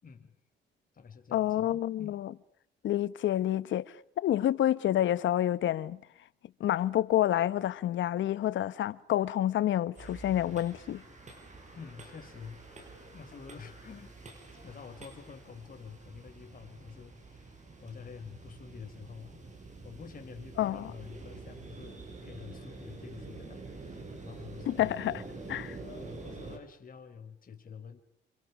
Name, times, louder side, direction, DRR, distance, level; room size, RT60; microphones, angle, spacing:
voice 1, 0.0-0.3 0.9-2.2 3.3-3.5 11.7-14.1 14.5-19.4 19.8-25.0 25.8-28.0, left 6 dB, 45° left, 4.8 m, -48 dB
voice 2, 1.3-2.3 2.8-4.0 4.2-6.0 6.6-11.0 20.6-20.9 24.7-25.2 25.5-25.8, left 12 dB, 70° left, 1.2 m, -28 dB
sound 1, 10.0-26.6, right 3 dB, 35° right, 8.0 m, -47 dB
28.5 x 27.0 x 6.1 m
cardioid pair, 90°, 20 cm